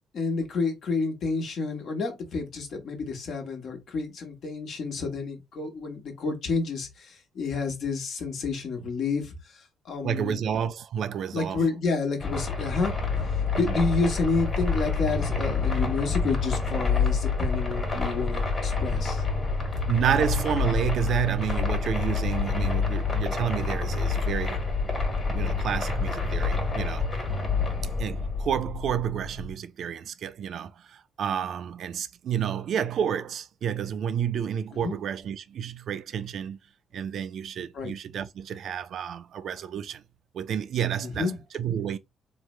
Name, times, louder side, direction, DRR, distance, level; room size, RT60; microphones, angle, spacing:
voice 1, 0.1-9.3 9.8-10.4 11.3-12.9 13.6-19.2 34.7-34.9 37.7-37.9 41.0-41.4, left 4 dB, 65° left, 1.2 m, -29 dB
voice 2, 10.0-11.6 13.5-13.8 19.9-24.6 25.3-27.1 28.0-36.6 36.9-40.0 40.3-42.0, right 8 dB, 65° right, 0.3 m, -30 dB
sound 1, 12.2-29.5, left 4 dB, 25° left, 1.4 m, -27 dB
3.1 x 2.1 x 3.1 m
cardioid pair, 90°, 0 cm